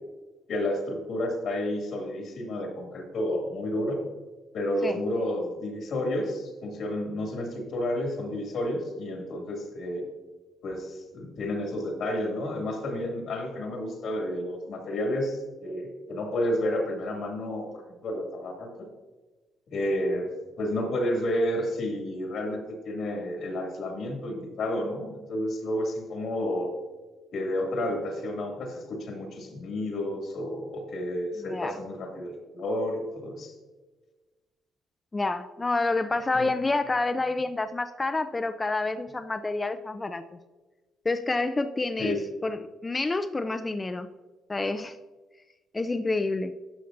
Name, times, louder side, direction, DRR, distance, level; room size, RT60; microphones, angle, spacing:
voice 1, 0.5-4.0 4.5-10.1 10.6-18.9 19.7-20.3 20.6-26.7 27.3-33.5 36.3-36.5 42.0-42.2, left 1 dB, 70° left, 1 dB, 2.3 m, -31 dB
voice 2, 31.4-31.8 35.1-40.4 41.0-42.2 42.4-44.1 44.5-45.0 45.7-46.5, left 3 dB, 25° left, 9 dB, 0.4 m, -28 dB
12.0 x 6.6 x 2.6 m, 1.3 s
cardioid pair, 90°, 0 cm